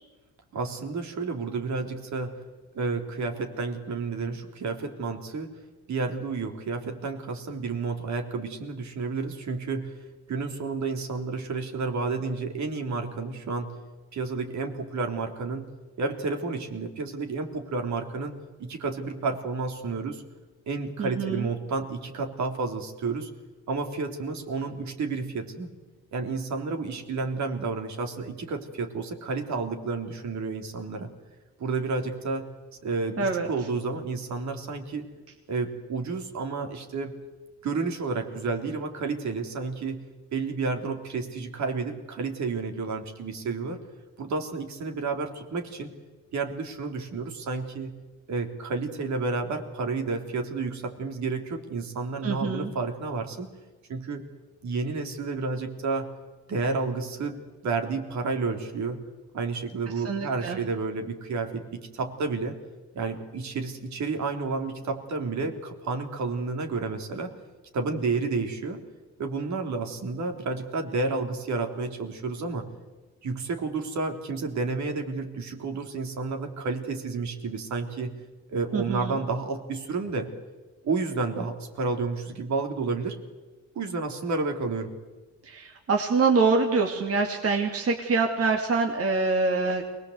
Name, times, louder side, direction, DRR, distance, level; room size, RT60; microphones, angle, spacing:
voice 1, 0.5-2.3 2.7-5.5 5.9-10.0 10.3-13.7 14.1-15.7 16.0-18.3 18.6-20.2 20.7-23.3 23.7-25.7 26.1-31.1 31.6-32.5 32.8-35.1 35.5-37.1 37.6-40.0 40.3-43.8 44.2-45.9 46.3-47.9 48.3-53.5 53.9-54.2 54.6-56.1 56.5-57.4 57.6-59.0 59.3-62.6 62.9-67.3 67.7-68.8 69.2-72.7 73.2-78.1 78.5-80.3 80.8-83.2 83.7-84.9, right 4 dB, 65° right, 4 dB, 3.5 m, -31 dB
voice 2, 21.0-21.5 33.2-33.5 52.2-52.7 60.0-60.6 78.7-79.2 85.4-89.8, right 4 dB, 50° right, 2 dB, 2.6 m, -25 dB
23.5 x 19.5 x 8.1 m, 1.2 s
cardioid pair, 90°, 30 cm